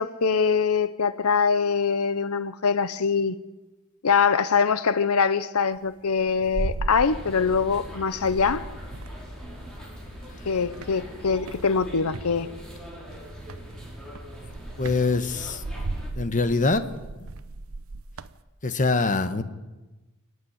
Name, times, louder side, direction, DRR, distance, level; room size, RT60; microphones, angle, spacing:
voice 1, 0.0-3.4 4.0-8.6 10.4-12.5, left 5 dB, 85° left, 0.7 m, -23 dB
sound 1, 5.8-7.8 8.1-10.3 10.7-12.3 13.4-13.7 14.1-18.4, right 2 dB, 70° right, 0.8 m, -36 dB
sound 2, 7.0-16.1, equal, 5° left, 5.1 m, -41 dB
voice 2, 14.8-15.6 16.1-16.9 18.6-19.4, left 3 dB, 35° left, 1.2 m, -23 dB
28.0 x 9.7 x 9.6 m
head